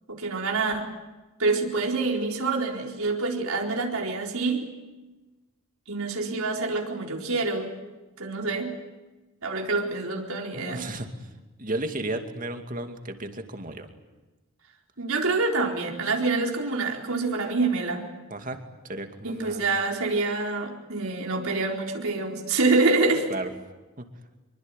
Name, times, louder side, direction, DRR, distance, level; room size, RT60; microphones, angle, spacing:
voice 1, 0.1-0.9 1.4-4.7 5.9-7.7 8.2-8.7 9.4-10.8 15.0-18.0 19.2-23.3, right 3 dB, 75° right, 2 dB, 4.3 m, -26 dB
voice 2, 10.5-11.3 11.6-13.9 18.3-19.6 23.3-23.5 24.0-24.1, right 1 dB, 40° right, 6 dB, 2.5 m, -34 dB
25.5 x 24.0 x 9.2 m, 1.2 s
head